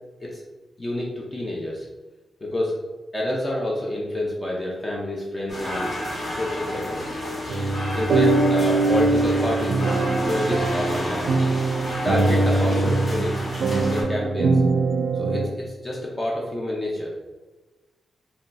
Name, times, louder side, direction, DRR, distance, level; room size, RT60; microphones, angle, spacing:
voice 1, 0.8-1.9 2.4-2.8 3.1-5.9 6.3-7.2 7.9-9.8 10.1-11.4 12.0-14.6 15.1-17.1, left 1 dB, 25° left, -3 dB, 0.5 m, -28 dB
sound 1, 5.5-14.0, left 1 dB, 55° left, 1.4 m, -31 dB
sound 2, 7.5-15.5, right 3 dB, 80° right, 0.4 m, -22 dB
3.6 x 2.2 x 4.0 m, 1.2 s
wide cardioid pair, 140°, 0 cm